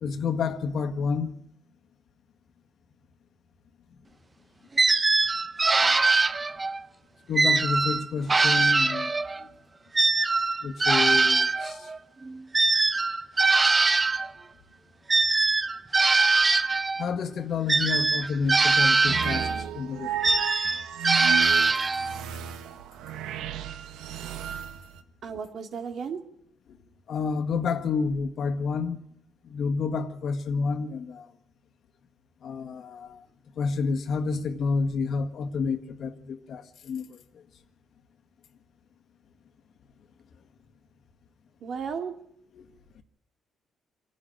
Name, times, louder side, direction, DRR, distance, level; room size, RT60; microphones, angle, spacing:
voice 1, 0.0-1.3 7.3-9.5 10.6-11.9 17.0-19.5 19.7-20.4 27.1-29.0 29.4-31.3 32.4-33.2 33.6-37.2, left 5 dB, 65° left, 1.8 m, -29 dB
sound 1, 4.8-6.8 7.4-9.4 9.9-14.3 15.1-17.1 17.7-19.7 20.2-22.2, right 3 dB, 25° right, 0.9 m, -22 dB
sound 2, 19.1-25.0, right 10 dB, 90° right, 1.4 m, -34 dB
voice 2, 25.2-26.2 41.6-42.1, right 6 dB, 60° right, 2.7 m, -34 dB
26.0 x 11.5 x 9.0 m
cardioid pair, 90°, 0 cm